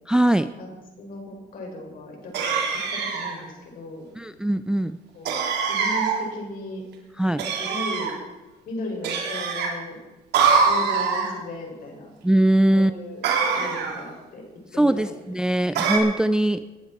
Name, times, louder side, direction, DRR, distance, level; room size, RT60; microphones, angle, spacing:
voice 1, 0.1-0.5 4.2-5.0 7.2-7.4 12.2-12.9 14.8-16.6, right 1 dB, 5° right, 12 dB, 0.4 m, -21 dB
voice 2, 1.0-2.6 2.9-4.1 5.1-5.4 5.7-6.8 7.3-8.2 8.7-10.0 10.6-12.1 12.7-13.2 13.5-14.4 14.7-15.1, left 2 dB, 55° left, 1 dB, 5.6 m, -36 dB
sound 1, 2.3-3.4 5.3-6.2 7.4-8.1 9.0-9.7 10.3-11.3 13.2-14.0 15.8-16.0, right 5 dB, 80° right, 3.3 m, -23 dB
20.5 x 11.5 x 4.4 m, 1.1 s
cardioid pair, 110°, 17 cm